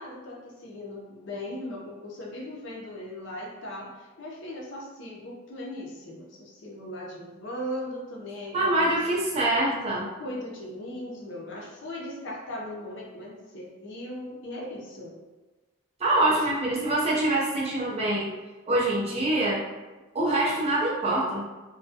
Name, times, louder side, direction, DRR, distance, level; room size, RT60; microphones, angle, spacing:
voice 1, 0.0-9.0 10.2-15.2 16.2-16.5, left 1 dB, 55° left, -2 dB, 0.5 m, -38 dB
voice 2, 8.5-10.1 16.0-18.3 18.7-19.6 20.1-21.4, right 1 dB, 30° right, -5 dB, 0.5 m, -25 dB
2.2 x 2.1 x 2.7 m, 1.2 s
head